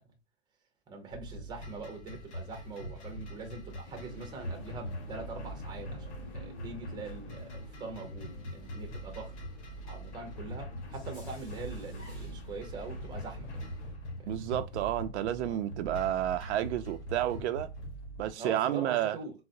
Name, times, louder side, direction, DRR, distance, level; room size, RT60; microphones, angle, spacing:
voice 1, 0.9-9.3 9.8-13.5 14.3-14.5 15.4-15.6 18.3-19.3, right 3 dB, 10° right, 0.6 m, -43 dB
sound 1, 1.1-18.3, equal, 75° left, 1.1 m, -42 dB
sound 2, 3.8-13.9, left 3 dB, 25° left, 1.2 m, -50 dB
voice 2, 14.3-17.7 18.2-19.2, right 12 dB, 80° right, 0.5 m, -31 dB
3.9 x 2.0 x 2.5 m
supercardioid pair, 150°, 34 cm